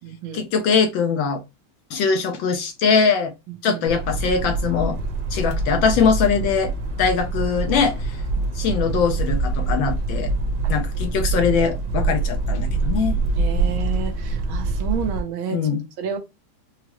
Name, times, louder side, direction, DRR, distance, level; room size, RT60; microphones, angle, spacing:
voice 1, 0.3-1.4 1.9-3.3 3.6-5.0 5.3-6.7 7.0-8.2 8.5-10.3 10.7-13.2 15.5-15.8, left 6 dB, 75° left, 1.3 m, -21 dB
sound 1, 3.9-15.2, right 3 dB, 55° right, 1.3 m, -25 dB
voice 2, 13.4-15.6 16.0-16.2, right 8 dB, 70° right, 1.5 m, -29 dB
4.8 x 2.0 x 2.9 m
omnidirectional pair, 2.4 m